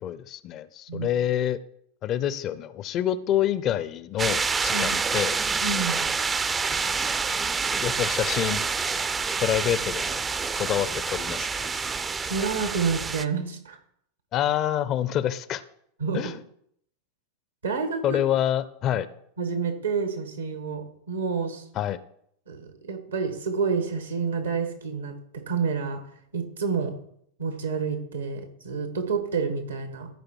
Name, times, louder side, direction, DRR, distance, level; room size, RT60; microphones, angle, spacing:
voice 1, 0.0-1.6 2.0-5.4 7.8-8.6 9.4-10.2 10.6-11.7 14.3-15.6 16.1-16.4 18.0-19.1 21.7-22.0, left 11 dB, 35° left, 16 dB, 0.6 m, -27 dB
sound 1, 4.2-13.2, right 5 dB, 20° right, 0.5 m, -27 dB
voice 2, 5.6-6.1 12.3-13.8 16.0-16.2 17.6-18.2 19.4-21.7 22.5-25.2 25.5-26.0 26.3-27.0 27.4-30.1, right 5 dB, 80° right, 6 dB, 1.9 m, -29 dB
13.5 x 5.2 x 4.5 m, 0.70 s
figure-of-eight pair, 90°, 0 cm